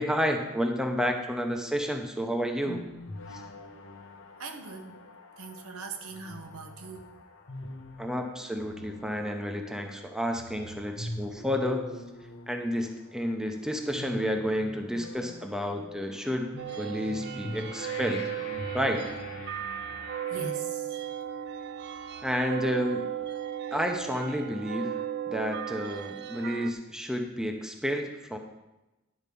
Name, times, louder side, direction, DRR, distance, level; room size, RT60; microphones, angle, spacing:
voice 1, 0.0-2.8 8.0-11.9 12.5-16.5 16.8-18.3 18.7-19.1 22.2-23.0 23.7-24.9 25.3-28.4, equal, 5° right, 3 dB, 0.8 m, -30 dB
sound 1, 2.2-20.5, left 1 dB, 60° left, 1.1 m, -44 dB
voice 2, 4.4-5.0 5.4-7.1 20.3-20.9, right 4 dB, 85° right, 5 dB, 1.1 m, -41 dB
sound 2, 16.6-26.7, right 10 dB, 50° right, 0.4 m, -36 dB
11.0 x 4.8 x 6.8 m, 1.0 s
head